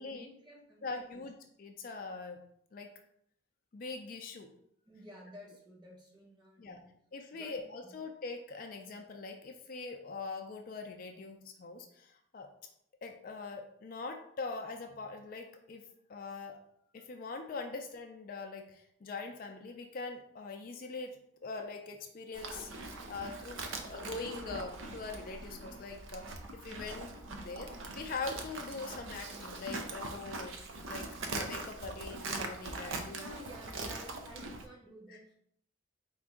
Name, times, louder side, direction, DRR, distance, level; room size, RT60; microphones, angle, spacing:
voice 1, 0.0-1.3 4.9-6.9 7.3-8.0 33.0-35.3, equal, 20° right, -2 dB, 1.0 m, -52 dB
voice 2, 0.8-2.4 2.7-2.9 3.7-4.5 6.6-6.8 7.1-12.5 13.0-15.8 16.1-16.6 16.9-21.1 21.4-22.7 23.1-23.6 23.9-27.1 27.4-33.3 35.1-35.2, left 3 dB, 45° left, 4 dB, 0.4 m, -42 dB
Livestock farm animals working animals, 22.3-34.7, right 3 dB, 75° right, 0.6 m, -42 dB
4.5 x 2.5 x 3.6 m, 0.69 s
head